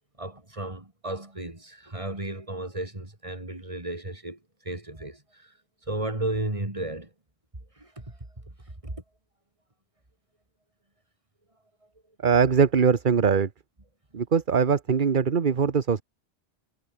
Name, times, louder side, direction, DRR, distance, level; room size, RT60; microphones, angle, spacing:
voice 1, 0.2-5.5 5.9-7.1 7.7-8.2 8.8-9.0, right 1 dB, 30° right, 3.3 m, -34 dB
voice 2, 12.2-13.5 14.1-16.0, right 6 dB, 55° right, 1.2 m, -21 dB
omnidirectional pair, 1.1 m